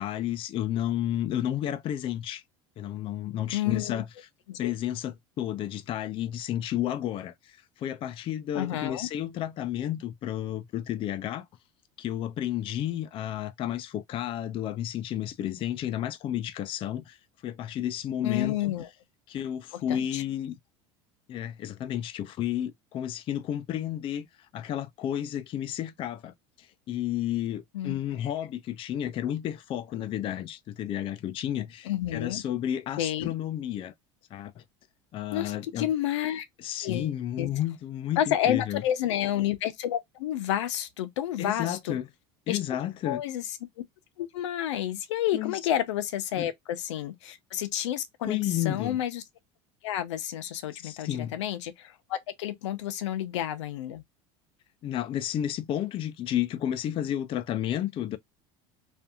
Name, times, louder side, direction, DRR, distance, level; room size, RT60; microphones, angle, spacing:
voice 1, 0.0-2.4 2.8-4.1 4.6-11.5 12.0-17.2 17.4-18.8 19.3-20.6 21.3-24.3 24.5-33.9 34.3-34.6 35.1-35.9 36.6-38.8 41.4-42.1 42.5-43.2 45.3-45.6 46.4-46.5 48.3-49.0 50.8-51.3 54.8-58.2, left 11 dB, 35° left, 0.4 m, -32 dB
voice 2, 3.5-4.0 4.5-4.7 8.5-9.1 18.2-18.9 19.7-20.2 27.7-28.3 31.8-32.4 33.0-33.3 35.3-36.4 36.8-37.1 37.4-37.5 38.2-42.0 42.5-42.6 43.0-43.4 44.2-49.2 49.8-54.0, left 11 dB, 90° left, 0.6 m, -30 dB
2.7 x 2.5 x 2.3 m
supercardioid pair, 105°, 15 cm